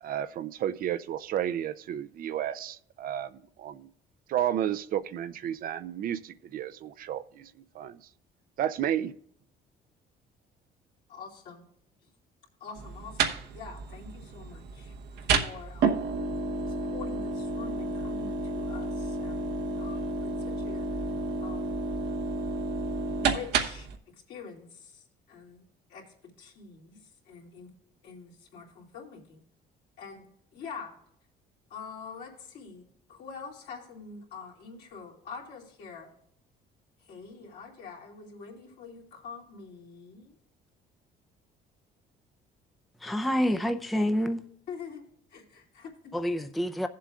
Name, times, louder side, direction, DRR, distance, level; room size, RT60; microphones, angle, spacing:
voice 1, 0.0-3.3 3.6-3.9 4.3-8.0 8.6-9.1, right 10 dB, 55° right, 0.5 m, -32 dB
voice 2, 11.1-11.6 12.6-16.1 16.7-21.1 21.4-21.7 23.2-27.7 28.0-29.4 30.0-31.0 31.7-36.1 37.0-40.4 44.7-46.1, left 5 dB, 70° left, 2.7 m, -46 dB
tv on hum off, 12.8-24.0, right 4 dB, 80° right, 1.0 m, -31 dB
voice 3, 43.0-44.4 46.1-46.9, equal, ahead, 0.5 m, -27 dB
16.0 x 7.5 x 2.4 m
cardioid pair, 110°, 17 cm